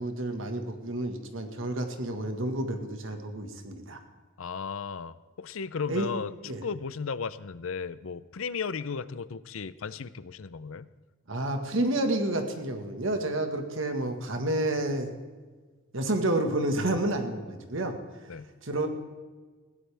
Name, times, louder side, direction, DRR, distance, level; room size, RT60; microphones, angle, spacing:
voice 1, 0.0-4.0 5.9-6.1 6.5-6.6 11.3-15.1 15.9-18.0 18.6-18.9, right 1 dB, 70° right, 5 dB, 1.6 m, -30 dB
voice 2, 4.4-10.9 18.3-18.5, left 5 dB, 80° left, 16 dB, 0.6 m, -35 dB
20.5 x 16.5 x 3.5 m, 1.4 s
head